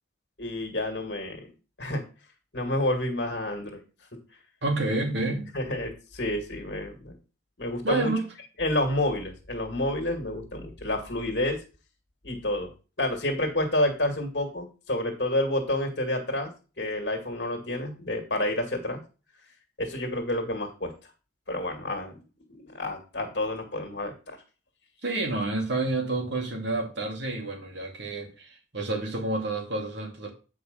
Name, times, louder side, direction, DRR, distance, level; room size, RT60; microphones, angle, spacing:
voice 1, 0.4-1.4 1.8-2.1 2.5-3.8 5.5-7.2 7.6-8.1 8.6-11.6 12.2-12.7 13.0-16.5 16.8-19.0 19.8-20.9 21.5-22.2 22.5-24.4, left 1 dB, 60° left, 2.0 m, -29 dB
voice 2, 4.6-5.5 7.8-8.3 25.0-30.3, right 2 dB, 70° right, 2.4 m, -29 dB
8.8 x 5.0 x 5.1 m
head